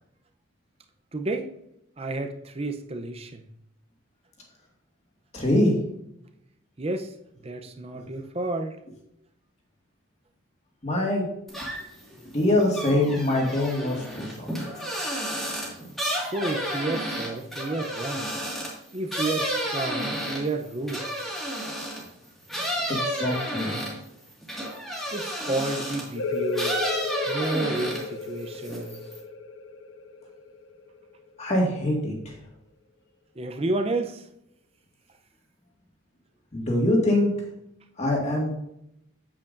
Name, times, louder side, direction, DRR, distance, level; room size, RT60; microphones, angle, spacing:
voice 1, 1.1-1.5 2.0-3.4 6.8-7.1 7.4-8.8 16.2-18.3 18.9-21.1 25.1-26.8 27.3-29.0 33.4-34.3, right 2 dB, 30° right, 6 dB, 0.6 m, -31 dB
voice 2, 5.3-5.8 8.0-8.1 10.8-11.3 12.2-14.8 22.8-23.8 31.4-32.1 36.5-37.3 38.0-38.5, left 1 dB, 30° left, -1 dB, 1.9 m, -24 dB
sound 1, 11.5-12.0 12.4-22.1 22.5-26.1 26.5-28.2 28.5-29.2, equal, ahead, 1.9 m, -31 dB
sound 2, 26.1-31.5, left 3 dB, 65° left, 0.5 m, -33 dB
8.7 x 8.3 x 2.6 m, 0.79 s
head